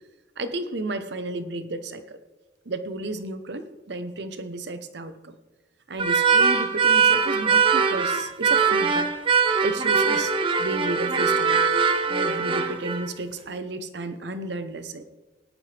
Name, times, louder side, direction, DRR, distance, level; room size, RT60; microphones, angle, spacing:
voice 1, 0.4-2.2 2.7-5.3 5.9-9.1 9.6-10.3 10.6-11.7 12.1-15.0, right 2 dB, 65° right, 10 dB, 0.9 m, -32 dB
sound 1, 6.0-13.1, right 5 dB, 30° right, 0.8 m, -21 dB
17.5 x 11.0 x 3.4 m, 1.1 s
head